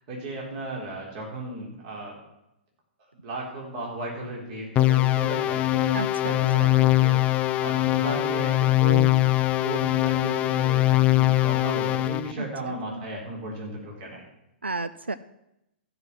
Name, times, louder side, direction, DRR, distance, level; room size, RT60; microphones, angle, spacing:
voice 1, 0.1-2.2 3.2-6.0 6.3-9.1 9.6-14.2, right 2 dB, 40° right, -2 dB, 3.9 m, -35 dB
sound 1, 4.8-12.3, left 16 dB, 25° left, 0.4 m, -22 dB
voice 2, 5.9-6.7 12.4-13.0 14.6-15.1, right 3 dB, 85° right, 13 dB, 0.4 m, -33 dB
13.5 x 5.9 x 7.3 m, 0.85 s
figure-of-eight pair, 115°, 6 cm